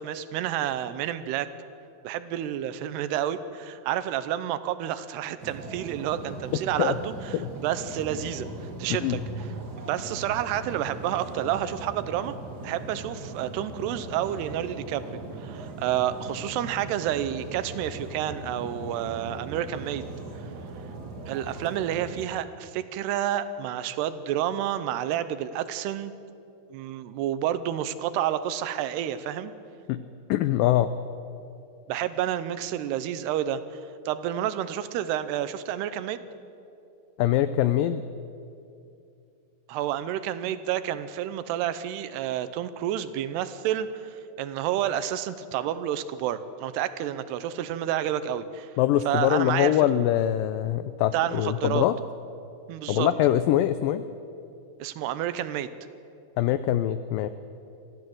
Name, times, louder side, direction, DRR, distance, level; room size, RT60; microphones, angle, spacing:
voice 1, 0.0-1.5 2.0-8.5 8.8-12.4 12.6-15.0 15.4-20.0 21.3-26.1 26.7-29.5 31.9-36.2 39.7-48.7 49.1-49.8 51.1-51.9 52.7-53.1 54.8-55.7, right 11 dB, 90° right, 13 dB, 2.9 m, -30 dB
sound 1, 5.4-22.3, right 2 dB, 45° right, 1.2 m, -39 dB
voice 2, 30.3-30.9 37.2-38.0 48.8-51.9 52.9-54.0 56.4-57.3, left 12 dB, 90° left, 12 dB, 1.9 m, -23 dB
24.0 x 15.5 x 7.9 m, 2.6 s
omnidirectional pair, 4.6 m